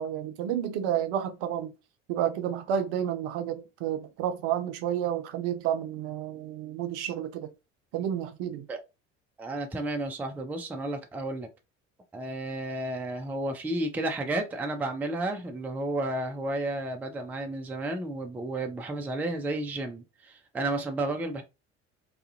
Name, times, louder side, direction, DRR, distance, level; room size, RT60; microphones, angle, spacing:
voice 1, 0.0-1.7 2.1-7.5 7.9-8.6, right 10 dB, 55° right, 0.5 m, -30 dB
voice 2, 9.4-11.5 12.1-21.4, right 2 dB, 5° right, 0.3 m, -32 dB
2.3 x 2.1 x 2.6 m
figure-of-eight pair, 55°, 35 cm